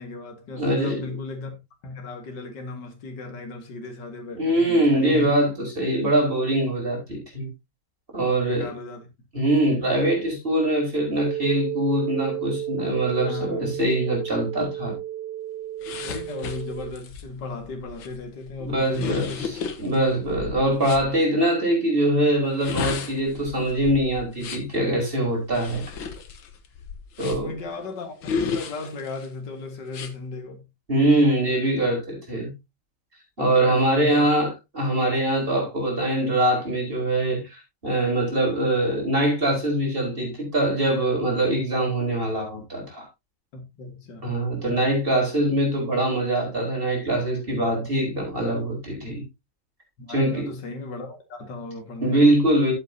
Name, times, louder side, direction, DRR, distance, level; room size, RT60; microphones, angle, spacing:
voice 1, 0.0-1.5 1.8-5.3 8.2-9.0 9.6-9.9 13.2-13.7 14.6-14.7 16.0-19.5 27.2-28.1 28.5-30.6 33.4-34.3 35.6-35.7 43.5-44.3 47.8-48.0 48.4-48.6 50.0-52.3, left 3 dB, 65° left, 2.5 m, -36 dB
voice 2, 0.6-1.1 4.3-7.5 8.1-8.7 9.3-14.9 18.7-19.5 19.8-25.8 27.2-27.5 30.9-32.5 33.4-43.1 44.2-49.2 50.1-50.5 52.0-52.7, right 1 dB, 30° right, 4.6 m, -23 dB
sound 1, 11.2-16.9, right 12 dB, 65° right, 1.2 m, -32 dB
sound 2, 15.8-21.1 22.4-24.8 25.5-27.6 28.2-29.3 29.9-30.1, left 5 dB, 85° left, 2.0 m, -33 dB
13.0 x 8.1 x 2.7 m
omnidirectional pair, 2.0 m